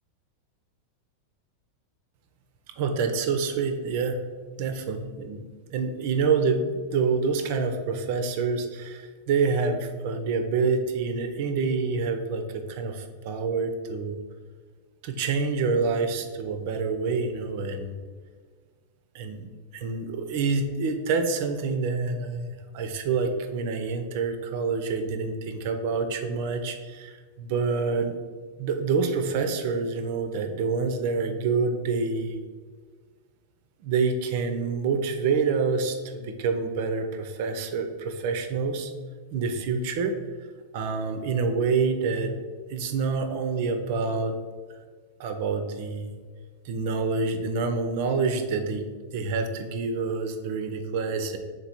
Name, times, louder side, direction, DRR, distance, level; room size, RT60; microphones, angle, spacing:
voice 1, 2.8-4.2 4.6-5.4 5.7-14.2 15.0-18.0 19.1-19.5 19.7-28.2 28.6-32.4 33.8-38.9 39.3-40.2 40.7-42.3 42.7-44.4 45.2-46.1 46.6-48.9 49.1-51.4, right 4 dB, 50° right, 7 dB, 0.5 m, -27 dB
3.7 x 3.3 x 4.2 m, 1.5 s
figure-of-eight pair, 90°, 0 cm